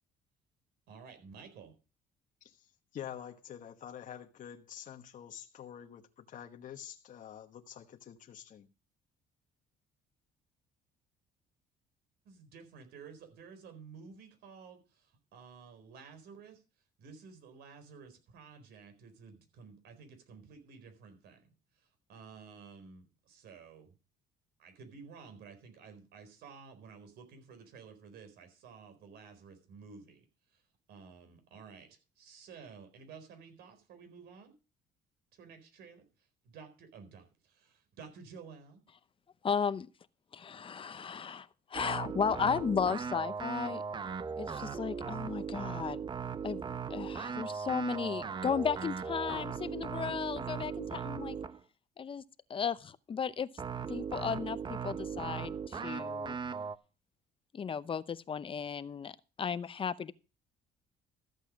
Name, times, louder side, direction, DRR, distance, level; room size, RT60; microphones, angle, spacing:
voice 1, 0.9-1.7 12.2-16.6 17.0-21.4 21.8-24.0 24.6-30.2 30.5-30.6 30.9-34.5 35.3-38.8, right 5 dB, 75° right, 4.2 m, -53 dB
voice 2, 2.4-8.7, left 9 dB, 50° left, 1.2 m, -47 dB
voice 3, 39.4-39.9 40.3-43.8 44.4-46.0 46.4-46.6 46.9-51.4 52.0-52.2 52.5-53.5 53.9-56.4 57.5-60.1, left 6 dB, 30° left, 0.7 m, -35 dB
sound 1, 41.7-51.6 53.6-56.8, right 6 dB, 25° right, 0.7 m, -38 dB
14.0 x 8.2 x 5.2 m
cardioid pair, 110°, 17 cm